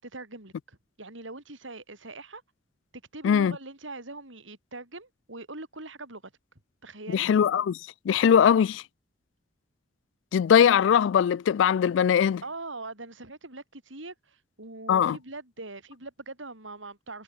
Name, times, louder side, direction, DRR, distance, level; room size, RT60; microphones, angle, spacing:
voice 1, 0.0-2.4 3.1-6.3 6.8-7.3 12.4-17.2, right 2 dB, 90° right, 6.0 m, -42 dB
voice 2, 7.1-7.8 8.1-8.8 10.3-12.4 14.9-15.2, left 8 dB, 80° left, 0.3 m, -21 dB
head